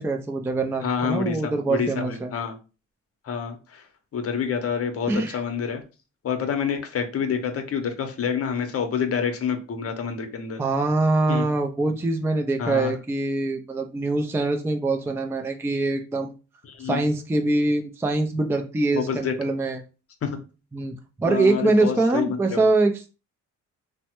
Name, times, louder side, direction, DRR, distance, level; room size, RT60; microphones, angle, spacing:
voice 1, 0.0-2.3 5.1-5.4 10.6-16.3 16.8-19.8 20.7-23.1, right 2 dB, 10° right, 4 dB, 0.4 m, -24 dB
voice 2, 0.8-2.5 3.2-3.9 4.1-5.8 6.2-10.6 11.3-11.5 12.6-12.9 16.7-17.0 18.9-19.3 20.2-20.4 21.2-22.6, left 7 dB, 50° left, 6 dB, 0.8 m, -28 dB
3.2 x 2.1 x 2.9 m, 0.32 s
cardioid pair, 90°, 30 cm